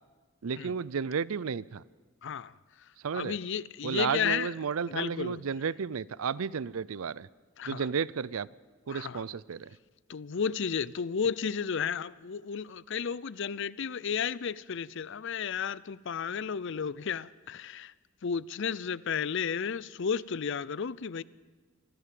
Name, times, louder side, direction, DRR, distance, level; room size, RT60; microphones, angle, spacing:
voice 1, 0.4-1.8 3.0-3.4 3.8-7.3 7.6-8.5 8.9-9.8, right 6 dB, 80° right, 0.5 m, -32 dB
voice 2, 2.2-2.5 3.1-4.5 4.9-5.4 7.6-7.9 8.9-9.2 10.1-17.9 18.2-21.2, left 6 dB, 60° left, 0.5 m, -33 dB
24.5 x 14.5 x 7.6 m
head